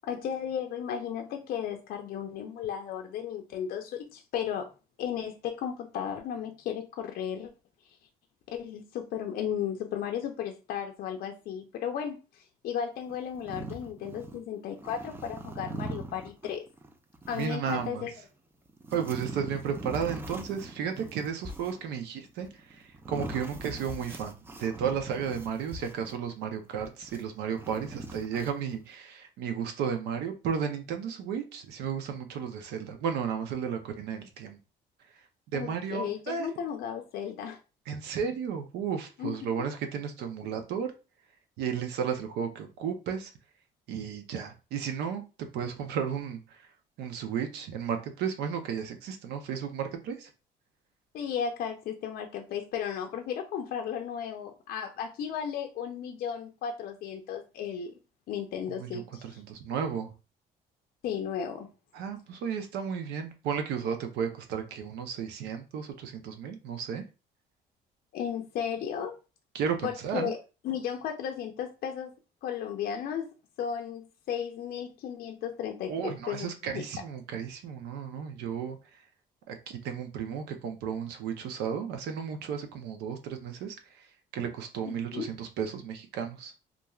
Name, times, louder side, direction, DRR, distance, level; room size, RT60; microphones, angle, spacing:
voice 1, 0.0-4.7 5.0-7.5 8.5-16.6 17.3-18.1 35.5-37.6 39.2-39.7 51.1-57.9 58.3-59.4 61.0-61.7 68.1-69.2 69.8-70.4 70.6-72.1 72.4-73.3 73.6-76.8 84.9-85.3, left 8 dB, 60° left, 0.4 m, -35 dB
sound 1, 13.1-14.4 14.7-17.9 18.7-26.3 26.8-28.8, right 2 dB, 15° right, 0.4 m, -41 dB
voice 2, 17.3-18.0 18.9-34.6 35.5-36.5 37.9-40.9 41.6-43.3 43.9-46.7 47.0-50.3 58.7-60.1 61.9-67.1 69.5-70.3 75.9-79.0 79.5-84.1 84.3-86.5, right 7 dB, 80° right, 0.6 m, -34 dB
3.0 x 2.4 x 2.3 m
cardioid pair, 110°, 17 cm